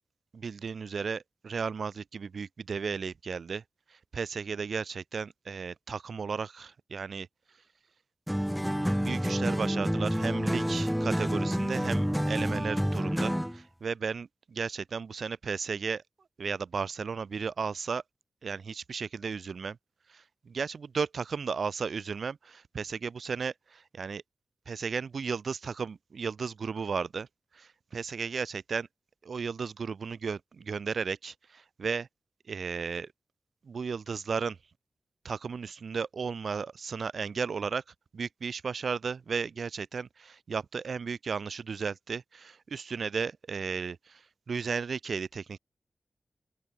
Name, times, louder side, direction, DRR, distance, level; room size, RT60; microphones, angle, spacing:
voice 1, 0.3-3.6 3.9-7.3 8.9-16.0 16.4-18.0 18.4-19.8 20.1-24.2 24.7-27.3 27.5-28.9 29.2-32.1 32.5-33.1 33.7-34.6 35.2-37.8 38.1-45.6, right 5 dB, 80° right, 2.3 m, -34 dB
sound 1, 8.3-13.6, equal, 5° right, 0.9 m, -28 dB
open air
cardioid pair, 60°, 0 cm